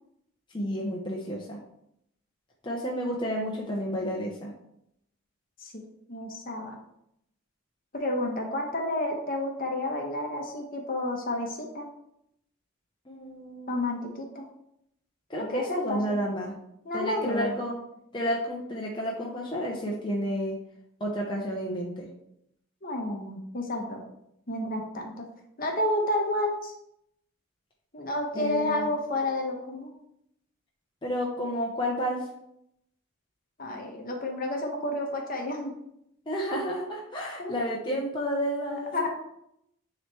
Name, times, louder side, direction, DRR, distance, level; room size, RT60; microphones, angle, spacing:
voice 1, 0.5-1.6 2.6-4.5 13.1-13.9 15.3-16.5 16.9-17.8 18.1-20.6 21.0-22.1 28.3-28.9 31.0-32.2 36.3-39.1, equal, 20° left, -2 dB, 0.8 m, -31 dB
voice 2, 5.6-6.8 7.9-11.9 13.7-14.5 15.4-16.2 16.8-17.6 22.8-24.0 24.5-25.3 25.6-26.7 27.9-29.9 33.6-35.7 37.4-37.6 38.9-39.1, left 1 dB, 45° left, 1 dB, 1.0 m, -30 dB
9.3 x 3.1 x 3.4 m, 0.78 s
head